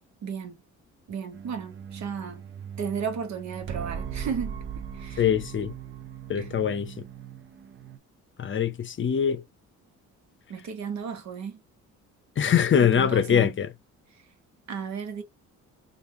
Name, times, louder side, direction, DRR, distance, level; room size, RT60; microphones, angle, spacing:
voice 1, 0.2-0.6 1.1-2.4 2.8-4.6 4.9-5.3 6.3-6.5 10.5-11.6 12.8-13.6 14.7-15.2, right 6 dB, 65° right, 1.1 m, -34 dB
sound 1, 1.3-8.0, right 7 dB, 40° right, 0.5 m, -39 dB
voice 2, 5.2-5.7 6.3-6.9 8.4-9.4 12.4-13.7, left 8 dB, 40° left, 0.6 m, -23 dB
3.4 x 2.5 x 3.0 m
cardioid pair, 90°, 30 cm